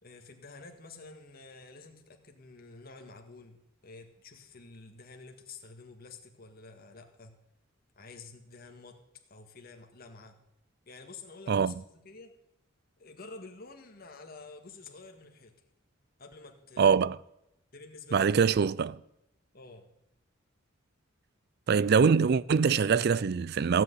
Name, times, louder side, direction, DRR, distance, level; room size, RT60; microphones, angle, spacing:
voice 1, 0.0-7.4 7.9-9.0 9.3-10.4 10.8-12.3 13.0-15.5 16.2-16.9 17.7-18.4 19.5-19.9, left 3 dB, 45° left, 1.8 m, -49 dB
voice 2, 16.8-17.2 18.1-19.0 21.7-23.8, right 6 dB, 50° right, 0.4 m, -24 dB
16.0 x 6.2 x 9.5 m
head